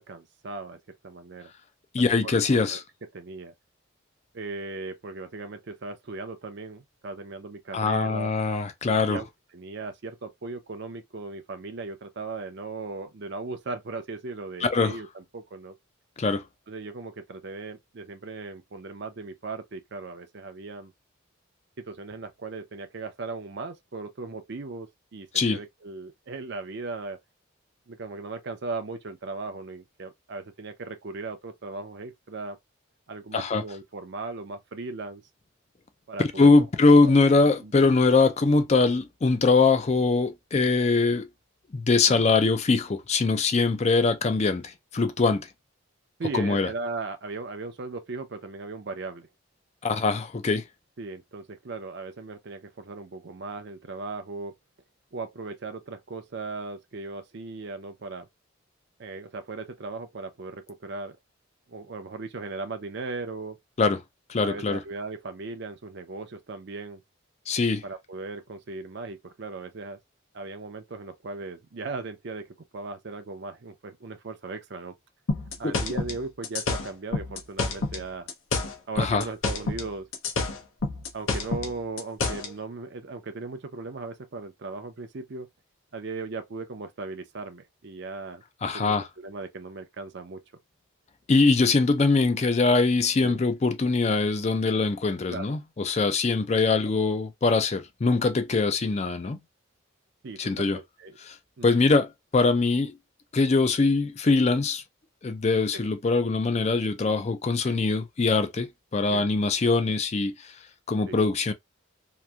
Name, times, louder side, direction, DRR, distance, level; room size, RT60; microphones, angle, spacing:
voice 1, 0.0-1.5 2.0-2.8 3.1-3.5 4.3-8.3 9.1-9.3 9.5-15.8 16.7-20.9 21.8-27.2 27.9-32.6 33.1-35.2 36.1-36.5 37.0-37.1 37.6-37.7 42.1-42.2 46.2-49.3 51.0-54.5 55.1-58.3 59.0-61.2 61.7-63.6 64.4-67.0 67.8-70.0 70.3-74.9 75.6-78.3 78.9-80.1 81.1-85.5 85.9-90.4 92.3-92.5 93.2-93.4 95.3-95.6 100.2-101.2 101.6-101.9 107.6-107.8 109.1-109.3 111.1-111.2, right 3 dB, 55° right, 0.5 m, -37 dB
voice 2, 1.9-2.8 7.7-9.2 14.6-15.0 16.2-16.4 25.3-25.6 33.3-33.6 36.2-41.3 41.7-45.5 46.3-46.7 49.8-50.6 63.8-64.0 64.3-64.8 67.5-67.8 75.6-75.7 79.0-79.2 88.6-89.1 91.3-99.4 100.4-100.8 101.3-101.4 101.6-103.0 103.3-104.8 105.2-110.5 110.9-111.5, left 3 dB, 30° left, 0.4 m, -22 dB
sound 1, 75.3-78.0 78.3-79.9 80.1-82.5, left 3 dB, 75° left, 0.8 m, -28 dB
2.9 x 2.5 x 2.2 m
head